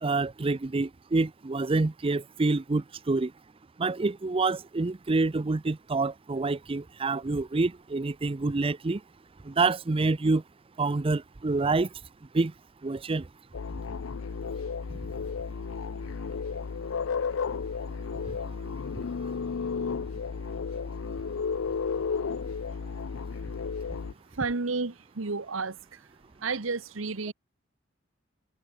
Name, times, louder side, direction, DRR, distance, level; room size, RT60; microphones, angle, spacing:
voice 1, 0.0-3.3 3.8-9.0 9.5-10.4 10.8-11.9 12.3-12.5 12.8-13.2, right 3 dB, 30° right, 0.5 m, -27 dB
sound 1, 13.5-24.1, left 5 dB, 80° left, 0.5 m, -33 dB
voice 2, 24.3-26.0 26.4-27.3, right 4 dB, 85° right, 1.2 m, -31 dB
head